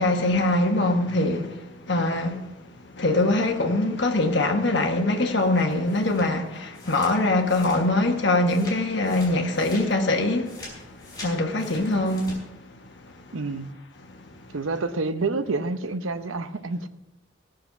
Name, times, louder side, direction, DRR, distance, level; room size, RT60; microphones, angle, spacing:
voice 1, 0.0-2.4 2.9-10.8 11.2-12.4, left 2 dB, 60° left, 1.5 m, -23 dB
sound 1, 5.4-8.1 8.4-12.4, left 2 dB, 20° left, 4.6 m, -44 dB
voice 2, 13.3-13.7 14.5-16.9, right 3 dB, 85° right, 0.8 m, -28 dB
17.0 x 6.5 x 5.9 m
head